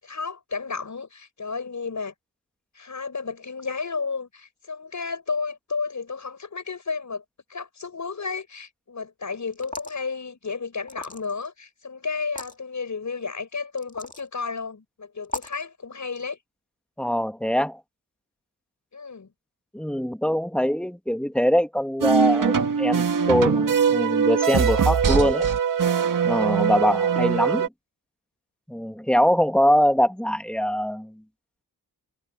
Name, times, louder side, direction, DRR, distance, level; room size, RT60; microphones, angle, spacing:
voice 1, 0.0-2.1 2.7-7.2 7.5-16.4 18.9-19.3, left 4 dB, 45° left, 6.9 m, -32 dB
sound 1, 9.5-10.0 10.9-11.5 12.2-12.5 13.8-14.3 15.2-15.6, left 2 dB, 20° left, 2.4 m, -36 dB
voice 2, 17.0-17.8 19.7-25.5 26.2-27.7 28.7-31.1, equal, 5° left, 2.4 m, -23 dB
sound 2, 22.0-27.7, right 6 dB, 55° right, 1.9 m, -22 dB
cardioid pair, 65°, 39 cm